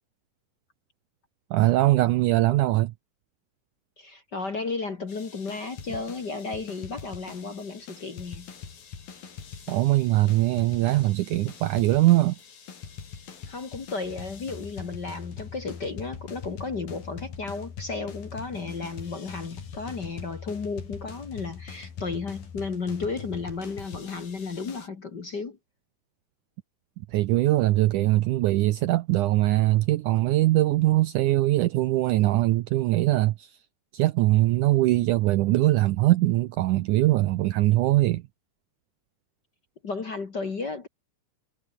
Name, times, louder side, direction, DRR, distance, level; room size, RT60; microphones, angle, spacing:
voice 1, 1.5-2.9 9.7-12.4 27.1-33.5 33.9-38.2, right 17 dB, 80° right, 1.8 m, -22 dB
voice 2, 4.0-8.5 13.5-25.6 39.8-40.9, left 4 dB, 40° left, 1.8 m, -33 dB
sound 1, 5.1-24.9, left 6 dB, 70° left, 5.7 m, -42 dB
omnidirectional pair, 4.3 m